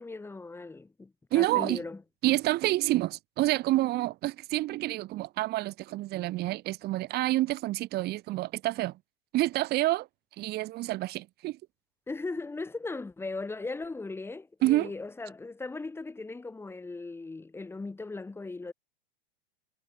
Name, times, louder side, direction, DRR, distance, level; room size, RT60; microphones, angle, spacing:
voice 1, 0.0-2.0 12.1-18.7, left 3 dB, 10° left, 6.1 m, -38 dB
voice 2, 1.3-1.8 2.2-8.9 9.3-10.1 10.4-11.6 14.6-14.9, right 17 dB, 30° right, 2.4 m, -28 dB
supercardioid pair, 145°, 31 cm